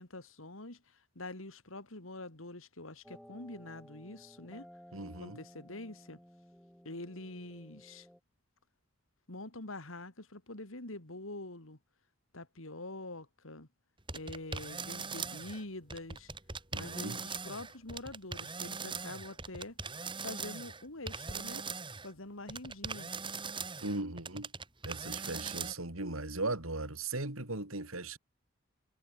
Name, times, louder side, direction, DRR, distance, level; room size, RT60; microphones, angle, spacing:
voice 1, 0.0-4.7 5.2-6.2 6.8-8.1 9.3-11.8 12.3-13.7 14.1-16.3 16.7-19.8 20.2-21.6 22.0-23.1, left 2 dB, 75° left, 3.1 m, -45 dB
sound 1, 3.0-8.2, equal, ahead, 5.0 m, -56 dB
voice 2, 4.9-5.4 16.7-17.2 23.8-24.5 24.8-28.2, right 2 dB, 85° right, 3.9 m, -38 dB
sound 2, 14.1-15.6 15.9-22.1 22.5-25.7, right 5 dB, 25° right, 5.5 m, -40 dB
head